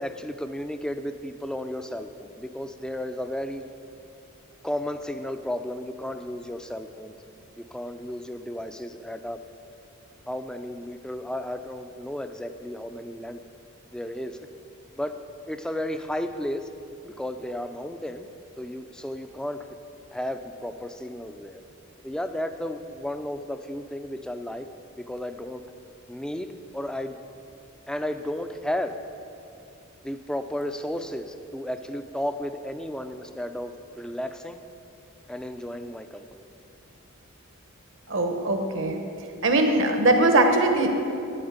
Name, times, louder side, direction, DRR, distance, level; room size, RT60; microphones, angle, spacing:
voice 1, 0.0-3.6 4.6-7.1 7.7-9.4 10.3-13.4 13.9-14.4 15.0-15.2 15.5-16.7 17.0-18.3 18.6-19.6 20.1-21.6 22.0-24.7 25.0-25.6 26.1-27.2 27.9-29.0 30.0-34.6 35.3-36.5, left 1 dB, 5° left, 8 dB, 0.4 m, -33 dB
voice 2, 38.1-39.0 39.4-40.9, right 2 dB, 60° right, 5 dB, 1.0 m, -21 dB
9.3 x 8.7 x 8.0 m, 2.7 s
head